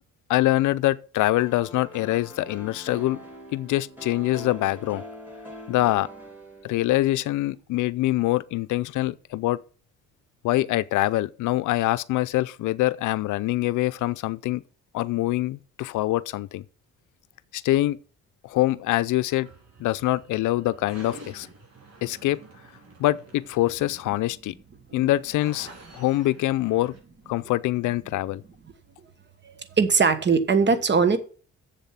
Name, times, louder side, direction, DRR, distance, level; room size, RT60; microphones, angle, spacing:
voice 1, 0.3-3.2 3.5-5.0 5.7-6.1 6.6-9.6 10.4-14.6 14.9-16.6 17.5-18.0 18.4-19.5 19.8-21.5 22.0-22.4 23.0-24.5 24.9-25.7 25.9-26.9 27.3-28.4, left 16 dB, 80° left, 0.5 m, -24 dB
sound 1, 1.4-7.3, equal, 5° right, 3.2 m, -43 dB
sound 2, 19.2-27.0, right 3 dB, 60° right, 4.3 m, -49 dB
voice 2, 29.8-31.2, right 5 dB, 35° right, 1.3 m, -20 dB
7.4 x 7.2 x 5.7 m
cardioid pair, 90°, 30 cm